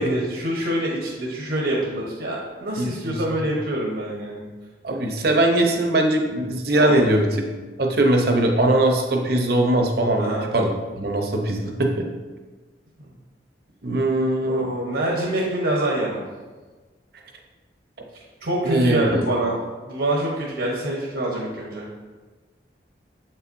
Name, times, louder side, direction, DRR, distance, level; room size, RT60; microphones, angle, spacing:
voice 1, 0.0-4.5 6.7-7.1 10.2-10.5 13.0-13.1 14.4-16.2 18.4-19.5 19.9-21.9, right 1 dB, 75° right, -3 dB, 1.1 m, -25 dB
voice 2, 2.8-3.2 4.8-7.4 7.8-12.0 13.8-14.7 18.6-19.3, right 1 dB, 55° right, 2 dB, 0.8 m, -21 dB
7.3 x 5.6 x 2.6 m, 1.3 s
head